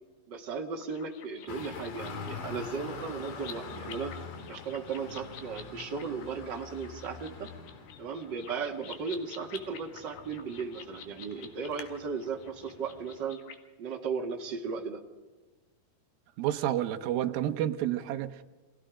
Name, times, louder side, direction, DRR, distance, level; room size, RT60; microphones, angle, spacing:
voice 1, 0.3-4.1 4.5-7.5 8.0-13.4 13.8-15.0, right 5 dB, 40° right, 2 dB, 1.7 m, -36 dB
sound 1, 0.8-13.6, left 7 dB, 75° left, 3.8 m, -50 dB
Traffic noise roadway noise, 1.5-13.2, left 5 dB, 60° left, 3.5 m, -45 dB
voice 2, 16.4-18.4, right 12 dB, 75° right, 7 dB, 2.7 m, -30 dB
30.0 x 23.5 x 5.1 m, 1.2 s
omnidirectional pair, 4.5 m